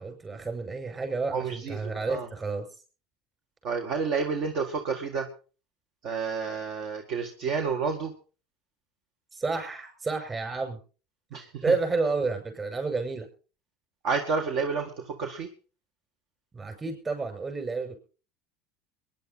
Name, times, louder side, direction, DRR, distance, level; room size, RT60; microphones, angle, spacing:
voice 1, 0.0-2.7 9.3-10.8 11.4-13.3 16.5-18.0, right 3 dB, 25° right, 5 dB, 6.6 m, -30 dB
voice 2, 1.3-2.3 3.6-5.3 6.0-8.1 11.3-11.8 14.0-15.5, right 5 dB, 55° right, 5 dB, 1.8 m, -30 dB
22.5 x 10.5 x 4.1 m, 0.37 s
supercardioid pair, 100°, 0 cm